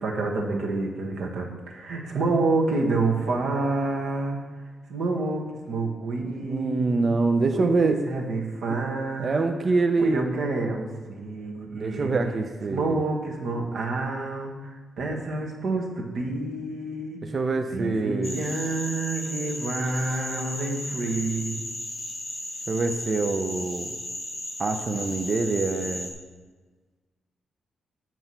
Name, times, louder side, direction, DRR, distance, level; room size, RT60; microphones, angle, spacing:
voice 1, 0.0-4.4 4.9-7.0 7.5-9.4 10.0-12.1 12.7-17.2 17.7-21.6, right 3 dB, 70° right, 1 dB, 1.2 m, -28 dB
voice 2, 6.4-8.0 9.2-10.2 11.7-13.0 17.3-18.4 22.7-23.9 24.6-26.1, right 3 dB, 35° right, 6 dB, 0.4 m, -25 dB
sound 1, 18.2-26.1, left 1 dB, 15° left, 0.9 m, -35 dB
7.7 x 4.6 x 5.6 m, 1.3 s
wide cardioid pair, 160°, 0 cm